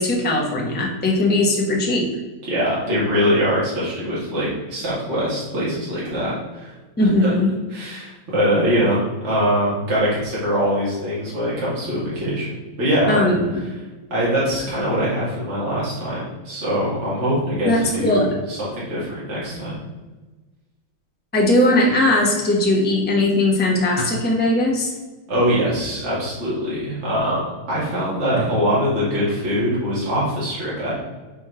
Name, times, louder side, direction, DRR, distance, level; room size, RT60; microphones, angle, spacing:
voice 1, 0.0-2.1 7.0-7.5 13.1-13.6 17.6-18.3 21.3-24.9, left 1 dB, 15° left, -2 dB, 0.3 m, -19 dB
voice 2, 2.4-6.7 7.0-7.4 7.7-12.5 12.8-13.3 14.1-19.7 25.3-27.4 27.7-30.9, equal, 35° right, -8 dB, 2.0 m, -22 dB
4.5 x 4.3 x 4.9 m, 1.2 s
omnidirectional pair, 2.2 m